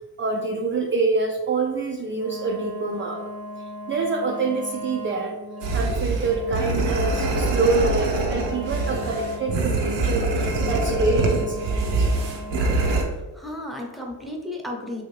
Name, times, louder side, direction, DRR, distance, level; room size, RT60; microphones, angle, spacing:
voice 1, 0.2-3.2 3.6-5.4 5.7-12.1, right 3 dB, 30° right, 2 dB, 0.3 m, -26 dB
Wind instrument woodwind instrument, 2.1-13.2, left 1 dB, 40° left, 0.7 m, -38 dB
sound 1, 5.6-13.0, right 3 dB, 80° right, 0.7 m, -24 dB
voice 2, 13.0-15.0, left 1 dB, ahead, 0 dB, 0.7 m, -34 dB
3.0 x 2.7 x 3.1 m, 1.2 s
cardioid pair, 65°, 43 cm